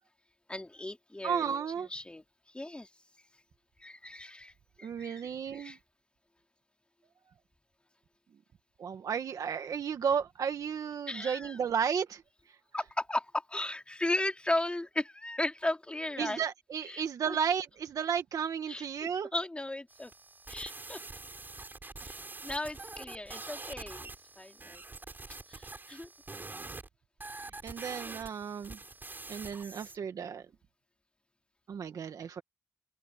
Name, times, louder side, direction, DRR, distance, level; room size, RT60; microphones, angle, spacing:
voice 1, 0.5-2.2 2.5-2.9 3.8-5.8 11.1-11.6 12.7-16.4 16.9-17.0 17.3-17.4 18.7-18.9 19.3-20.1 20.5-21.0 22.0-24.1 24.4-24.8 25.5-26.1, left 1 dB, 20° left, 3.5 m, -36 dB
voice 2, 1.2-1.9 4.8-5.8 8.8-12.2 16.2-19.3 27.6-28.8 29.3-30.5 31.7-32.4, right 7 dB, 80° right, 1.6 m, -33 dB
sound 1, 19.9-26.9 27.2-30.0, right 3 dB, 35° right, 7.1 m, -45 dB
open air
cardioid pair, 65°, 6 cm